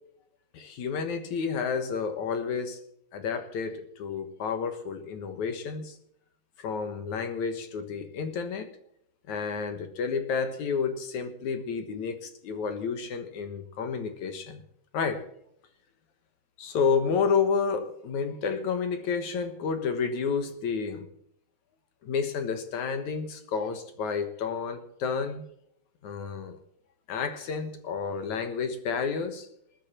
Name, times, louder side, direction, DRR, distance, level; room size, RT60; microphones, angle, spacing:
voice 1, 0.5-2.8 3.1-6.0 6.6-8.7 9.3-14.6 14.9-15.2 16.6-21.1 22.0-25.4 26.0-26.6 27.1-29.5, left 5 dB, 60° left, 8 dB, 2.3 m, -30 dB
21.0 x 10.5 x 4.4 m, 0.71 s
omnidirectional pair, 4.4 m